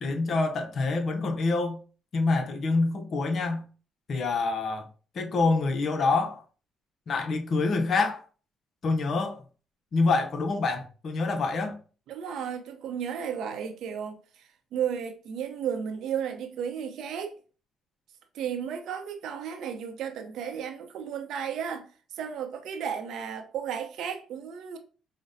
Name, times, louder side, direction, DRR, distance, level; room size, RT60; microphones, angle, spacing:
voice 1, 0.0-1.8 2.1-3.6 4.1-4.9 5.1-6.4 7.1-8.2 8.8-9.4 9.9-11.8, left 3 dB, 55° left, 0.7 m, -26 dB
voice 2, 12.1-17.3 18.3-21.9 22.1-24.8, right 8 dB, 75° right, 0.6 m, -34 dB
5.0 x 2.1 x 2.6 m
supercardioid pair, 75°, 0 cm